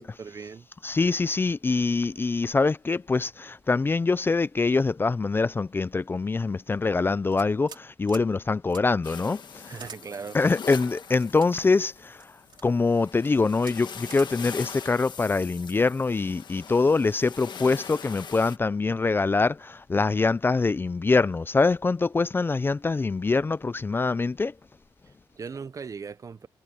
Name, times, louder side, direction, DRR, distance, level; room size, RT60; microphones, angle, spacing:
voice 1, 0.0-0.7 9.7-10.4 25.0-26.5, right 5 dB, 40° right, 0.6 m, -39 dB
voice 2, 0.8-9.7 10.3-12.3 12.6-24.5, left 3 dB, 25° left, 0.4 m, -24 dB
sound 1, 7.3-8.3 8.7-8.8 9.7-10.0 10.8-11.5 12.2-12.7 13.2-13.3 13.6-13.8 14.1-14.3, right 6 dB, 60° right, 3.7 m, -45 dB
sound 2, 9.0-18.6, left 6 dB, 55° left, 1.3 m, -42 dB
wide cardioid pair, 135°, 9 cm